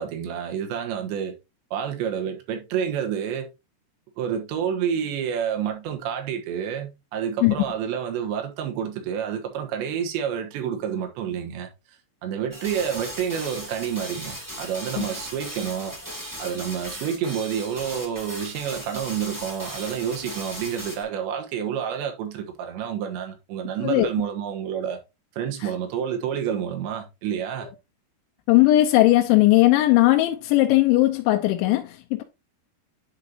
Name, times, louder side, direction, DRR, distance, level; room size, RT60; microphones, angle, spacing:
voice 1, 0.0-1.4 1.7-3.5 4.2-11.7 12.2-16.0 16.4-25.0 25.4-27.7, right 8 dB, 80° right, 3.5 m, -29 dB
sound 1, 12.5-21.0, equal, 10° right, 1.0 m, -37 dB
voice 2, 28.5-32.2, left 16 dB, 85° left, 3.1 m, -18 dB
10.0 x 5.2 x 2.8 m
omnidirectional pair, 5.2 m